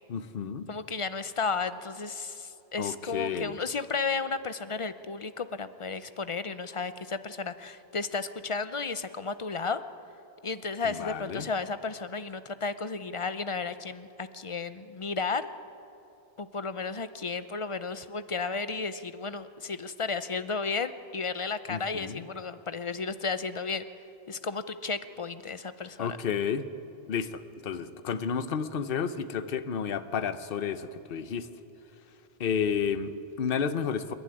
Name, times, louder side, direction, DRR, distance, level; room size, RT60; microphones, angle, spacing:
voice 1, 0.1-0.7 2.8-3.6 10.8-11.5 21.7-22.2 26.0-26.7 27.1-31.5 32.4-34.1, left 7 dB, 60° left, 12 dB, 1.0 m, -31 dB
voice 2, 0.7-9.8 10.4-15.5 16.4-23.8 24.3-26.2, left 4 dB, 35° left, 12 dB, 0.6 m, -33 dB
28.0 x 11.5 x 9.7 m, 2.9 s
omnidirectional pair, 1.1 m